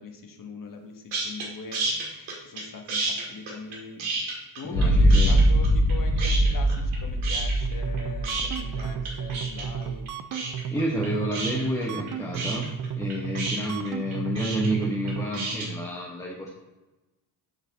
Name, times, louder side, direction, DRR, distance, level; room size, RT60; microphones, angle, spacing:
voice 1, 0.0-10.1, left 4 dB, 40° left, 4 dB, 1.4 m, -42 dB
sound 1, 1.1-1.5 1.7-2.6 2.9-4.9 5.1-5.9 6.2-7.0 7.2-15.7, right 3 dB, 75° right, 2.1 m, -31 dB
voice 2, 4.6-5.4 10.7-16.5, equal, 5° left, -2 dB, 1.1 m, -30 dB
sound 2, 4.7-10.0, equal, 85° left, 2.0 m, -22 dB
sound 3, 7.6-15.3, right 8 dB, 40° right, 0.5 m, -34 dB
8.4 x 3.9 x 4.1 m, 1.1 s
supercardioid pair, 65°, 49 cm